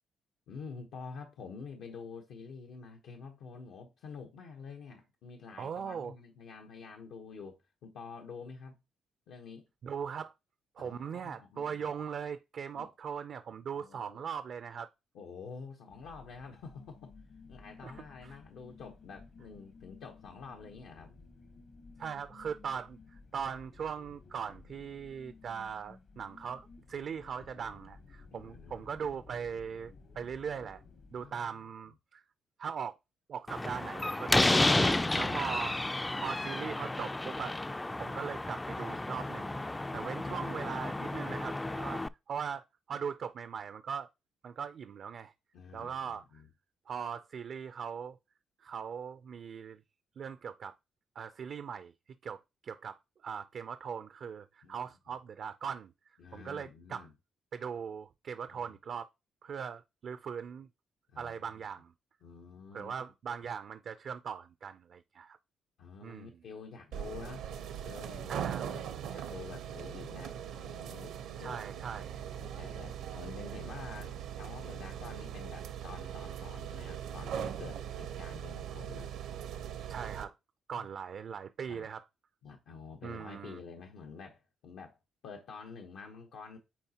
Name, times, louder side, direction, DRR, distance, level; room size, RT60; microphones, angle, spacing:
voice 1, 0.5-8.8 9.3-9.6 10.8-11.8 12.7-12.9 13.7-14.2 15.1-17.1 17.5-21.1 28.3-28.9 31.2-31.5 35.0-35.6 39.9-40.6 45.5-46.5 54.6-54.8 56.2-57.1 58.5-58.7 61.1-61.6 62.2-63.1 65.8-67.5 67.8-71.2 71.4-71.6 72.3-79.1 80.7-80.9 81.7-81.9 82.4-85.0 85.2-86.6, left 5 dB, 80° left, 1.0 m, -48 dB
voice 2, 5.6-6.1 9.8-10.3 10.8-14.9 17.8-17.9 18.2-18.3 22.0-30.8 31.1-32.2 32.6-33.0 33.3-35.8 36.2-37.6 37.9-39.6 39.9-44.1 44.4-45.3 45.7-46.4 46.9-48.2 48.6-49.8 50.2-50.7 51.2-51.9 52.2-55.9 56.3-57.1 57.5-59.1 59.4-60.7 61.2-61.9 62.7-65.4 66.0-66.4 68.3-68.8 71.4-72.2 79.9-80.4 80.7-82.0 83.0-83.6, right 7 dB, 60° right, 0.4 m, -40 dB
sound 1, 15.9-31.3, left 4 dB, 55° left, 1.0 m, -55 dB
Slam, 33.5-42.1, left 2 dB, 15° left, 0.3 m, -31 dB
sound 2, 66.9-80.2, right 9 dB, 85° right, 0.8 m, -40 dB
8.9 x 4.0 x 2.9 m
cardioid pair, 90°, 0 cm